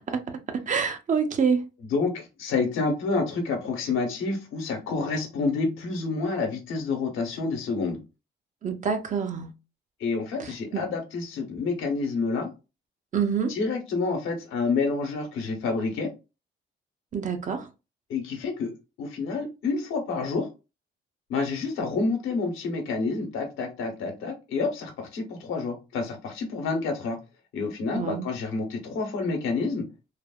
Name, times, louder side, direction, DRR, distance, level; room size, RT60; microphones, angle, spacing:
voice 1, 0.1-1.7 8.6-9.5 10.4-10.9 13.1-13.5 17.1-17.7 27.9-28.3, right 6 dB, 40° right, 0.6 m, -27 dB
voice 2, 1.8-8.0 10.0-12.5 13.5-16.1 18.1-20.5 21.3-27.2 27.5-29.9, left 4 dB, 90° left, 0.9 m, -28 dB
3.2 x 2.0 x 2.3 m
cardioid pair, 90°, 20 cm